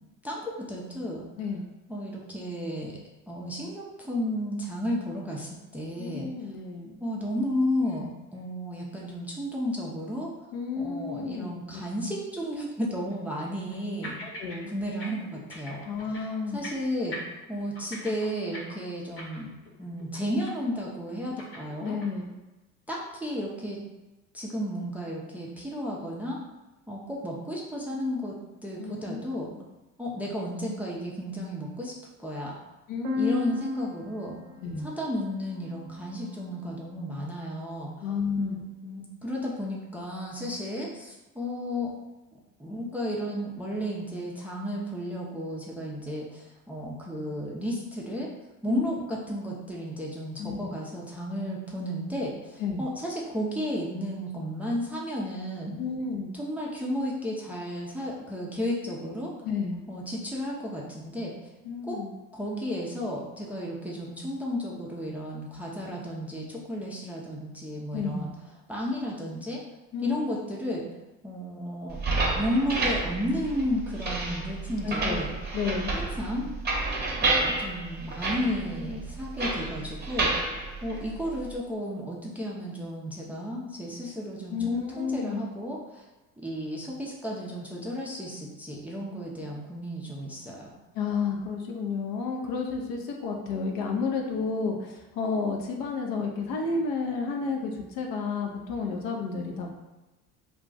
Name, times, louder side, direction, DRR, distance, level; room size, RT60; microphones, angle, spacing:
voice 1, 0.2-1.2 1.9-2.9 3.3-6.3 7.0-10.3 10.8-14.2 14.7-17.2 17.5-19.5 19.8-22.0 22.9-23.8 24.3-26.4 26.9-28.4 28.6-29.5 30.0-31.9 32.2-32.5 33.1-34.4 34.8-38.1 38.4-41.9 42.6-48.3 48.6-55.8 56.3-59.3 59.9-61.5 61.8-62.0 62.3-68.3 68.7-69.6 70.0-70.8 71.2-72.0 72.4-75.3 75.9-76.5 77.2-80.5 80.8-86.0 86.4-90.8, equal, 5° right, -4 dB, 0.5 m, -33 dB
voice 2, 6.0-7.0 10.5-11.8 14.2-14.7 15.9-16.6 21.8-22.3 28.8-29.3 32.9-33.5 34.6-34.9 38.0-38.6 48.7-49.0 50.4-50.7 52.6-52.8 55.8-56.3 59.4-59.8 61.6-62.1 67.9-68.3 69.9-70.2 74.8-75.2 75.5-76.0 84.5-85.4 90.9-99.7, left 4 dB, 50° left, 1 dB, 0.7 m, -31 dB
sound 1, 7.8-8.0 8.3-8.4 9.1-9.2 12.3-12.4 13.1-13.8 14.0-14.6 14.8-15.1 15.3-16.3 16.6-16.8 17.1-19.7 20.0-20.2 20.5-20.8 21.1-22.2, left 1 dB, 30° left, 1.0 m, -42 dB
sound 2, 33.0-36.8, left 2 dB, 75° right, 0.6 m, -37 dB
sound 3, 71.9-81.6, right 3 dB, 25° right, 0.9 m, -30 dB
2.4 x 2.3 x 3.8 m, 1.0 s
hypercardioid pair, 60°, 43 cm